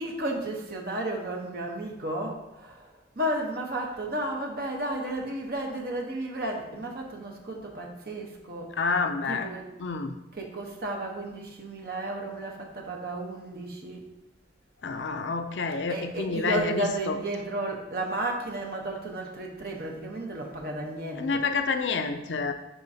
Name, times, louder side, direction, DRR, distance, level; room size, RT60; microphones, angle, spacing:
voice 1, 0.0-2.9 3.2-8.7 9.3-9.7 10.3-14.1 15.9-21.4, right 1 dB, 55° right, 1 dB, 1.0 m, -33 dB
voice 2, 8.8-9.5 9.8-10.2 14.8-17.2 21.2-22.5, left 4 dB, 75° left, 7 dB, 0.5 m, -28 dB
10.5 x 3.8 x 2.8 m, 0.95 s
head